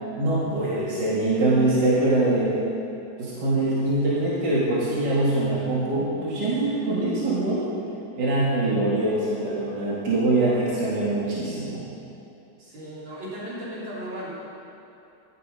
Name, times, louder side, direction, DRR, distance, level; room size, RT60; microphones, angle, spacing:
voice 1, 0.2-2.5 3.2-7.7 8.2-11.8, right 2 dB, 70° right, -8 dB, 2.9 m, -23 dB
voice 2, 12.6-14.3, equal, 85° right, -8 dB, 4.0 m, -36 dB
12.5 x 11.0 x 5.4 m, 2.8 s
omnidirectional pair, 2.0 m